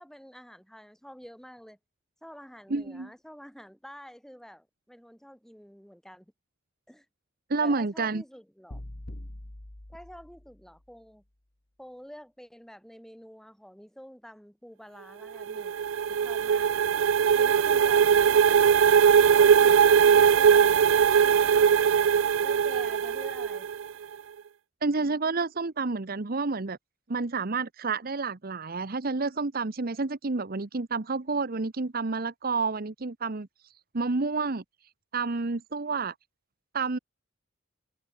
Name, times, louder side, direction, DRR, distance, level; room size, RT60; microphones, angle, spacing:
voice 1, 0.0-1.8 2.2-6.3 6.9-7.1 7.6-8.8 9.9-11.2 11.8-16.7 17.4-18.7 19.4-21.0 21.2-21.6 22.4-23.7, equal, ahead, 7.2 m, -48 dB
voice 2, 2.7-3.1 7.5-8.2 24.8-26.8 27.1-33.5 33.9-34.6 35.1-36.1 36.7-37.0, right 4 dB, 50° right, 0.9 m, -29 dB
sound 1, 8.7-10.8, left 1 dB, 50° left, 1.9 m, -43 dB
sound 2, 15.2-23.9, right 7 dB, 85° right, 0.4 m, -20 dB
head